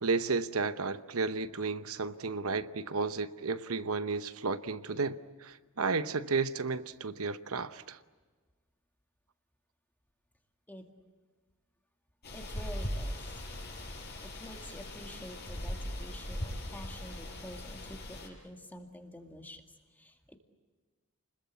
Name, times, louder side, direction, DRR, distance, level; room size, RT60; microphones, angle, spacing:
voice 1, 0.0-8.0, right 4 dB, 75° right, 12 dB, 1.0 m, -33 dB
sound 1, 12.2-18.3, left 1 dB, 50° left, 5.6 m, -39 dB
voice 2, 12.3-13.2 14.2-20.4, equal, 10° left, 4 dB, 2.2 m, -48 dB
30.0 x 21.0 x 8.4 m, 1.4 s
head